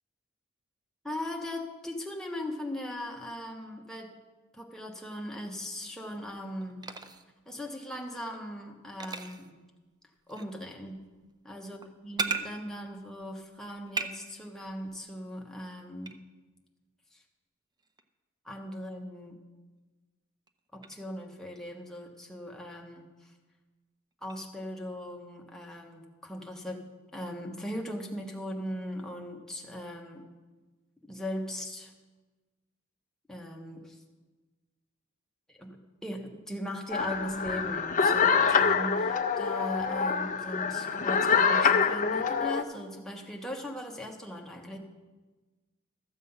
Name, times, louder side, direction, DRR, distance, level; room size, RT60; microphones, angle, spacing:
voice 1, 1.0-4.1 4.5-6.9 7.5-9.6 10.3-11.0 11.4-16.2 17.1-17.2 18.4-19.4 20.7-23.3 24.2-30.2 31.0-31.9 33.3-34.0 35.5-44.8, equal, 5° left, 0 dB, 1.1 m, -39 dB
sound 1, 6.0-7.3 8.0-8.4 9.0-9.5 10.3-12.5 12.7-14.1 14.4-15.1 16.0-16.1 17.8-18.0 20.5-20.6 20.8-21.0 24.3-24.4, right 4 dB, 20° right, 0.5 m, -38 dB
sound 2, 36.9-42.6, left 6 dB, 40° left, 0.5 m, -26 dB
13.5 x 7.3 x 5.5 m, 1.3 s
head